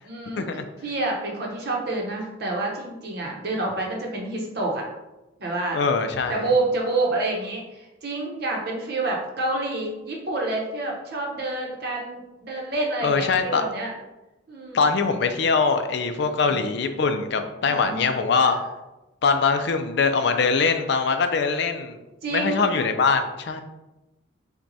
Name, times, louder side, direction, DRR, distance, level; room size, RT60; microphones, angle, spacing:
voice 1, 0.0-0.5 0.8-4.8 5.4-5.8 6.3-13.9 14.5-14.9 16.2-16.6 17.6-18.0 18.5-18.6 22.2-22.6, right 2 dB, 55° right, -1 dB, 0.8 m, -28 dB
voice 2, 5.7-6.5 13.0-13.6 14.7-18.6 19.2-22.0 22.3-23.6, left 4 dB, 60° left, 7 dB, 0.4 m, -22 dB
5.8 x 2.2 x 2.7 m, 1.0 s
head